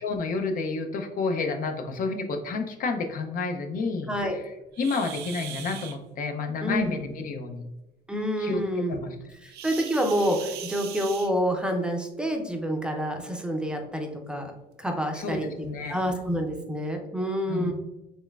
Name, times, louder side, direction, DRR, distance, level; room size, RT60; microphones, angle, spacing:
voice 1, 0.0-4.4 4.8-7.7 8.4-9.2 15.1-16.0 17.5-17.7, left 4 dB, 55° left, 5 dB, 0.5 m, -30 dB
voice 2, 4.1-4.4 6.6-6.9 8.1-9.0 9.4-14.5 14.8-17.7, equal, 5° right, 2 dB, 0.5 m, -28 dB
sound 1, 4.7-6.0 9.5-11.7 13.0-13.1 13.7-13.8 14.4-14.5 15.3-15.4 15.9-16.0, right 10 dB, 75° right, 0.5 m, -40 dB
4.3 x 3.1 x 2.3 m, 1.0 s
cardioid pair, 110°, 17 cm